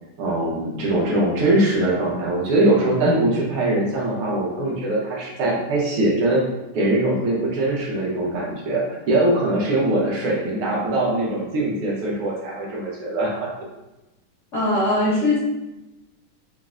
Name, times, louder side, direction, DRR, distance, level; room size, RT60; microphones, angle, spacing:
voice 1, 0.2-6.4 6.7-13.5, right 1 dB, 85° right, -4 dB, 1.8 m, -22 dB
voice 2, 14.5-15.4, left 2 dB, 75° left, -6 dB, 0.6 m, -20 dB
5.7 x 2.0 x 2.4 m, 1.0 s
omnidirectional pair, 2.3 m